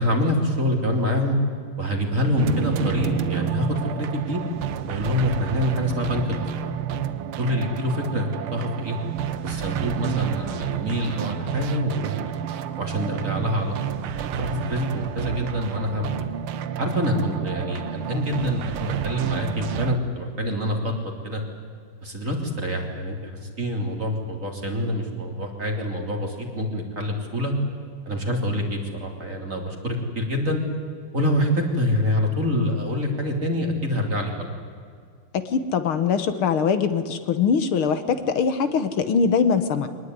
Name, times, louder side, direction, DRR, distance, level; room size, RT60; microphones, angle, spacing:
voice 1, 0.0-1.4 1.8-4.4 4.9-6.7 7.4-9.0 9.4-12.3 12.8-13.7 14.1-16.1 16.8-20.9 21.2-21.4 22.0-23.3 23.6-27.5 28.1-30.6 31.1-34.5, equal, 35° right, 2 dB, 3.7 m, -26 dB
sound 1, 2.4-20.0, right 9 dB, 80° right, 1.9 m, -29 dB
voice 2, 35.3-39.9, left 6 dB, 75° left, 10 dB, 2.1 m, -22 dB
24.0 x 19.5 x 9.6 m, 2.1 s
omnidirectional pair, 2.4 m